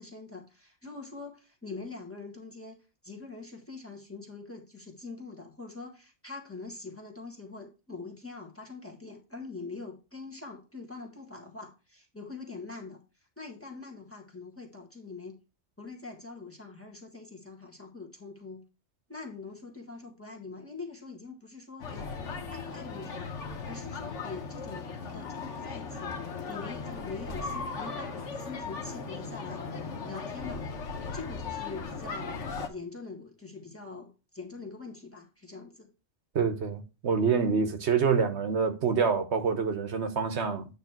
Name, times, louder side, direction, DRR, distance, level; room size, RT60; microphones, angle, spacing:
voice 1, 0.0-2.8 3.0-13.0 13.4-15.4 15.8-18.6 19.1-22.1 22.5-23.3 23.6-30.7 31.1-32.4 32.7-35.9, left 4 dB, 10° left, 1.5 m, -44 dB
sound 1, 21.8-32.7, left 4 dB, 75° left, 1.4 m, -37 dB
voice 2, 36.3-40.6, right 6 dB, 70° right, 1.1 m, -26 dB
9.0 x 3.2 x 5.8 m
omnidirectional pair, 1.2 m